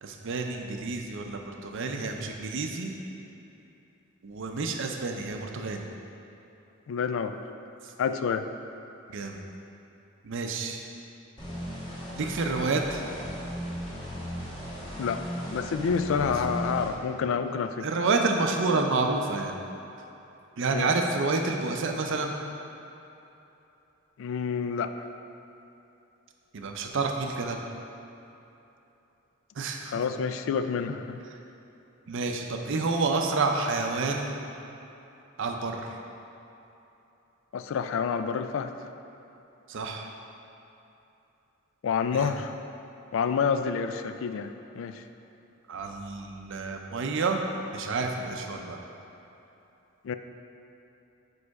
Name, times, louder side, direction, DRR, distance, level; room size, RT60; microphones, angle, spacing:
voice 1, 0.0-2.9 4.2-5.8 9.1-9.4 10.2-10.8 12.2-13.0 17.8-19.6 20.6-22.4 26.5-27.6 29.6-30.0 32.1-34.4 35.4-36.0 39.7-40.1 42.1-42.3 45.7-47.4 47.7-48.8, right 3 dB, 65° right, 3 dB, 0.5 m, -29 dB
voice 2, 6.9-7.4 8.0-8.4 15.0-15.2 15.5-17.9 20.7-20.9 24.2-25.0 29.9-31.2 37.5-38.7 41.8-42.5 43.1-44.5 44.8-45.0 50.0-50.1, left 6 dB, 65° left, 9 dB, 0.3 m, -28 dB
sound 1, 11.4-16.9, equal, 20° left, 1.4 m, -36 dB
5.1 x 4.7 x 4.7 m, 2.9 s
head